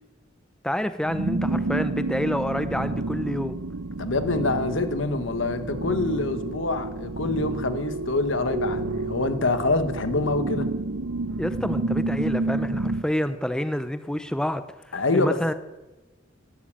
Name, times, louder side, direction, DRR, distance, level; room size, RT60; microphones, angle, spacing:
voice 1, 0.6-3.6 11.4-15.5, equal, 5° left, 0.5 m, -28 dB
sound 1, 1.0-13.0, right 2 dB, 70° right, 0.8 m, -29 dB
voice 2, 4.0-10.7 14.9-15.4, left 2 dB, 75° left, 1.3 m, -26 dB
12.5 x 11.5 x 8.8 m
head